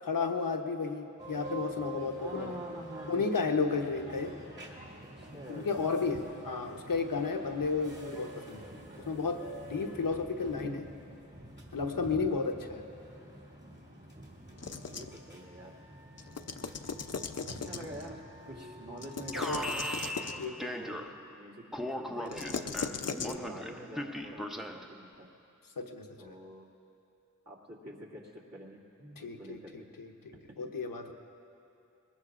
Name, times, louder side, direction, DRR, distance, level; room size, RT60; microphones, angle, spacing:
voice 1, 0.0-2.5 3.1-4.3 5.5-8.6 9.1-10.9 11.7-12.8 19.4-19.6 20.4-20.5 23.2-23.6 25.8-26.3 29.2-29.6 30.0-31.1, left 4 dB, 90° left, 4 dB, 1.0 m, -33 dB
sound 1, 1.2-20.5, right 1 dB, 35° right, 2.5 m, -47 dB
voice 2, 2.2-3.5 5.0-6.2 12.2-12.3 14.6-15.7 17.6-19.9 20.3-21.6 21.9-25.3 26.2-26.7 27.5-29.9, right 1 dB, 50° right, -4 dB, 2.4 m, -47 dB
sound 2, 14.6-15.2 16.2-18.1 19.0-20.5 22.3-23.4, left 5 dB, 50° left, 0.6 m, -38 dB
Alarm, 19.3-21.3 21.7-25.0, equal, ahead, 0.7 m, -38 dB
21.0 x 20.5 x 2.5 m, 2.7 s
wide cardioid pair, 70°, 33 cm